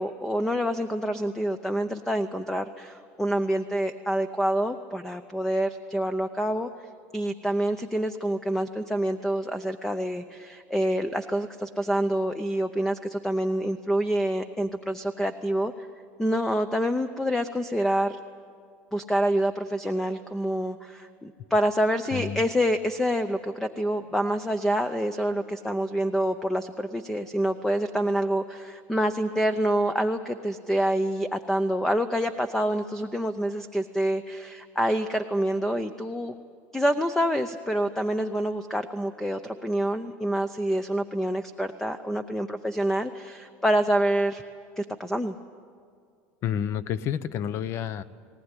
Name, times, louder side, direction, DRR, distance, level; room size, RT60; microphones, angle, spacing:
voice 1, 0.0-6.7 7.1-15.7 16.2-18.2 18.9-36.3 36.7-44.4 44.8-45.4, equal, 5° left, 10 dB, 0.6 m, -27 dB
voice 2, 22.1-22.4 46.4-48.0, left 9 dB, 45° left, 16 dB, 0.8 m, -29 dB
19.5 x 19.0 x 9.8 m, 2.2 s
cardioid pair, 145°, 6 cm